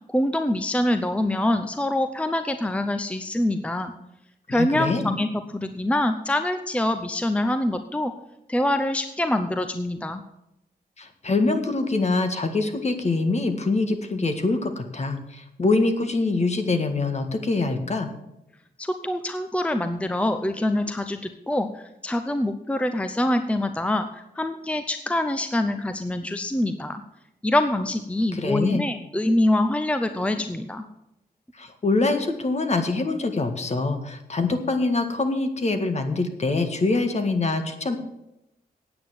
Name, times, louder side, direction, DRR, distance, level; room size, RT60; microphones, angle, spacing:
voice 1, 0.1-3.9 4.5-8.1 8.5-10.2 18.8-27.0 27.4-30.8, left 1 dB, 5° left, 8 dB, 0.7 m, -25 dB
voice 2, 4.5-5.1 11.0-18.1 28.3-28.8 31.6-38.0, left 3 dB, 40° left, 7 dB, 1.7 m, -24 dB
9.1 x 8.8 x 7.5 m, 0.88 s
cardioid pair, 90°, 17 cm